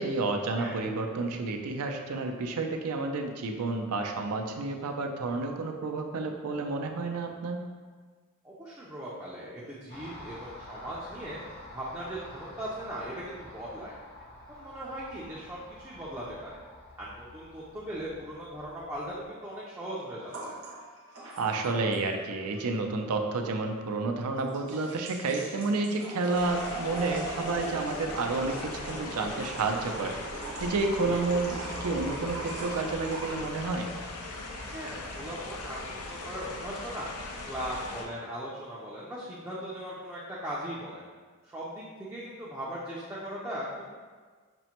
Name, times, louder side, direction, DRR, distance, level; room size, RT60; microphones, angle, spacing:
voice 1, 0.0-7.6 21.4-30.2 30.6-33.9, right 3 dB, 75° right, 4 dB, 0.4 m, -30 dB
voice 2, 8.4-11.4 11.7-13.9 14.5-16.6 17.0-20.6 31.1-31.2 34.7-37.1 37.4-41.0 41.4-43.8, equal, 10° right, -7 dB, 0.4 m, -39 dB
Car passing by, 9.9-19.3, left 1 dB, 45° left, 0.7 m, -49 dB
sound 1, 20.3-22.3 22.5-22.6 24.4-33.5, right 2 dB, 60° right, 0.8 m, -41 dB
sound 2, 26.3-38.0, left 2 dB, 80° left, 0.5 m, -39 dB
6.0 x 2.1 x 2.8 m, 1.5 s
head